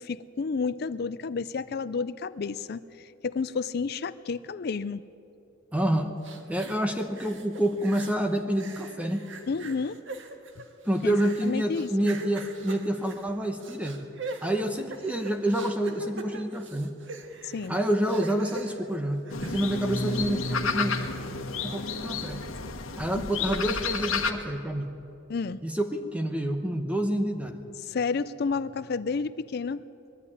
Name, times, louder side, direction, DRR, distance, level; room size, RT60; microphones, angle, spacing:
voice 1, 0.0-5.0 9.5-10.0 11.0-11.2 11.4-12.1 17.4-17.8 23.2-23.3 25.3-25.6 27.8-29.8, left 5 dB, 50° left, 15 dB, 0.4 m, -31 dB
voice 2, 5.7-6.2 6.5-9.2 10.8-14.1 14.4-16.9 17.7-20.9 21.6-22.4 23.0-24.9 25.6-27.6, right 1 dB, 5° right, 5 dB, 0.9 m, -28 dB
sound 1, 6.2-8.3 8.6-19.7 20.1-20.2, right 2 dB, 65° right, 1.7 m, -42 dB
sound 2, 19.3-24.3, left 4 dB, 85° left, 1.5 m, -31 dB
21.0 x 13.5 x 9.8 m, 2.9 s
head